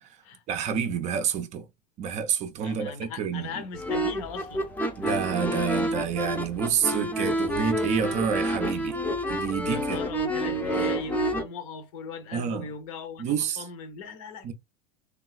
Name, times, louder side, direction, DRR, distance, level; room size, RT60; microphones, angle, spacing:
voice 1, 0.5-1.7 2.0-3.6 5.0-9.0 9.3-10.0 10.7-10.9 12.3-12.7 13.2-13.6 14.4-14.5, right 7 dB, 35° right, 0.5 m, -28 dB
voice 2, 2.6-4.7 5.0-5.1 9.6-14.5, left 5 dB, 55° left, 0.7 m, -39 dB
sound 1, 3.7-11.4, equal, 10° left, 0.6 m, -28 dB
3.0 x 2.2 x 2.2 m
figure-of-eight pair, 80°, 21 cm